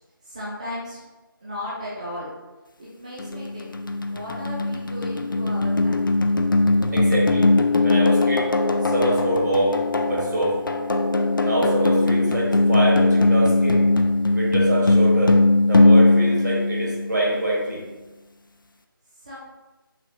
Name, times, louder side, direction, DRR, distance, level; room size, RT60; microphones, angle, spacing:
voice 1, 0.2-1.0 1.4-2.3 2.8-3.8 4.1-6.1 19.1-19.4, left 1 dB, 20° right, -8 dB, 0.5 m, -35 dB
sound 1, 3.2-17.4, left 2 dB, 65° left, 0.4 m, -20 dB
voice 2, 6.9-7.5 7.8-8.5 8.8-9.8 10.1-10.6 11.4-13.8 14.3-15.4 15.7-17.8, right 1 dB, 50° right, -4 dB, 1.3 m, -24 dB
5.8 x 2.4 x 2.8 m, 1.1 s
figure-of-eight pair, 160°, 12 cm